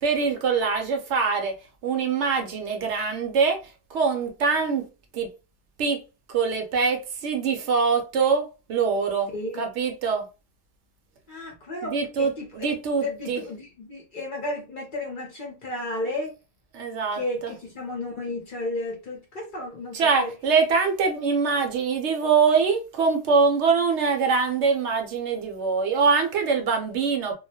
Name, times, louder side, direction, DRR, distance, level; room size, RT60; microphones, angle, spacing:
voice 1, 0.0-1.5 1.8-3.6 3.9-4.9 5.1-5.3 5.8-6.0 6.3-9.3 9.6-10.3 11.8-13.4 16.7-17.5 19.9-27.3, right 5 dB, 70° right, 0.8 m, -23 dB
voice 2, 9.3-9.7 11.3-16.4 17.1-20.3, left 2 dB, 50° left, 0.7 m, -33 dB
2.3 x 2.1 x 2.6 m
omnidirectional pair, 1.3 m